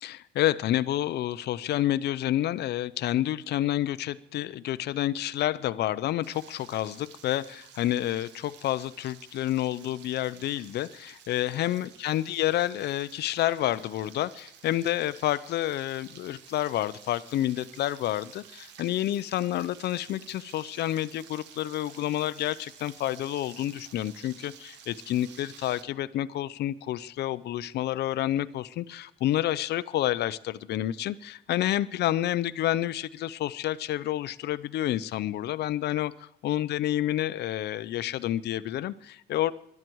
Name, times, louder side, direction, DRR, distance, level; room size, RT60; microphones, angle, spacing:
voice 1, 0.0-36.1 36.4-39.5, left 13 dB, 70° left, 17 dB, 0.7 m, -29 dB
Frying (food), 6.2-25.8, right 8 dB, 90° right, 1.3 m, -52 dB
20.5 x 12.0 x 4.7 m, 0.74 s
cardioid pair, 120°, 18 cm